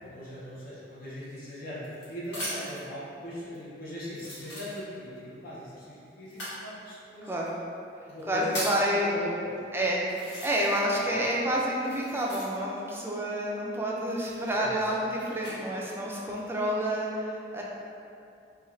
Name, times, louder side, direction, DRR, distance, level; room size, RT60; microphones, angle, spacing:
voice 1, 0.0-7.3 8.1-9.6 14.5-14.9, equal, 55° left, -8 dB, 0.6 m, -39 dB
sound 1, 1.2-2.9 3.5-3.6 4.1-5.2 6.3-6.6 7.5-7.6 8.1-8.9 9.6-9.7 10.1-11.0 11.2-12.8 14.0-15.6 16.2-16.7, equal, 80° left, 1.2 m, -39 dB
voice 2, 8.3-9.1 9.7-10.1 10.4-17.6, equal, 15° right, -4 dB, 0.3 m, -29 dB
2.4 x 2.2 x 3.1 m, 2.5 s
head